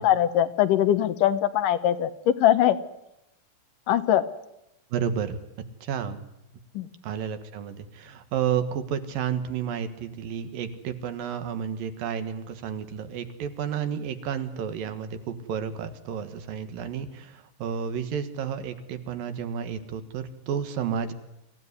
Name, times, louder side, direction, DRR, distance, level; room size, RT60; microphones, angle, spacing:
voice 1, 0.0-2.8 3.9-4.2 6.8-6.9, left 11 dB, 75° left, 12 dB, 2.5 m, -21 dB
voice 2, 4.9-6.2 7.0-21.1, right 8 dB, 85° right, 9 dB, 3.3 m, -31 dB
25.0 x 15.5 x 9.8 m, 0.86 s
omnidirectional pair, 4.0 m